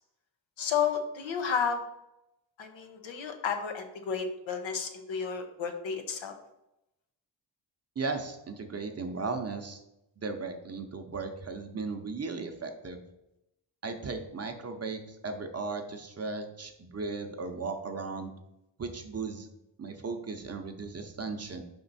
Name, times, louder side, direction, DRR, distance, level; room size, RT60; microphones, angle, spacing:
voice 1, 0.6-1.8 2.6-6.3, left 6 dB, 80° left, 6 dB, 1.0 m, -32 dB
voice 2, 8.0-9.8 10.2-13.0 13.8-18.3 18.8-19.5 19.8-21.6, right 4 dB, 35° right, 5 dB, 0.6 m, -36 dB
5.4 x 4.3 x 4.0 m, 0.86 s
wide cardioid pair, 115°, 45 cm